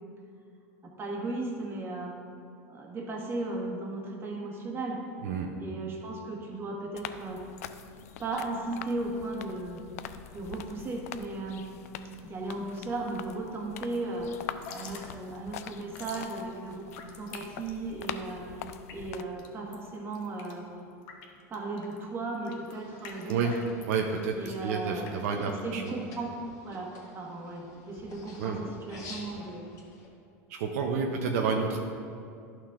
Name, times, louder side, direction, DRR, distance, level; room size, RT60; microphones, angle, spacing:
voice 1, 0.8-2.1 2.7-5.0 5.6-7.4 8.2-9.8 10.3-11.7 12.2-18.6 18.9-20.7 21.5-23.5 24.4-26.4 26.6-29.7 31.0-31.2, right 2 dB, 30° right, -1 dB, 1.4 m, -36 dB
voice 2, 5.2-5.5 23.3-23.5 23.9-25.9 28.4-28.6 30.5-31.8, right 5 dB, 75° right, 2 dB, 0.7 m, -30 dB
sound 1, 6.9-19.2, left 10 dB, 85° left, 0.3 m, -44 dB
Drip / Trickle dribble, 14.6-26.1, left 5 dB, 60° left, 0.9 m, -49 dB
sound 2, 22.7-30.1, left 2 dB, 45° left, 1.9 m, -51 dB
11.5 x 6.0 x 2.5 m, 2.4 s
supercardioid pair, 110°, 8 cm